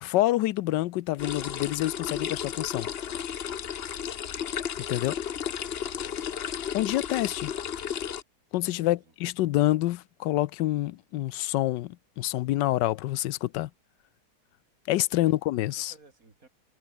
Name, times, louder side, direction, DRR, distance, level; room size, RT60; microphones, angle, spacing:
voice 1, 0.0-2.9 4.9-5.2 6.7-7.5 8.5-13.7 14.9-15.9, left 16 dB, 90° left, 1.3 m, -27 dB
sound 1, 1.2-8.2, left 8 dB, 50° left, 0.8 m, -33 dB
voice 2, 5.8-6.4 8.6-9.1 15.1-15.3 15.7-16.5, right 3 dB, 50° right, 3.9 m, -56 dB
omnidirectional pair, 1.9 m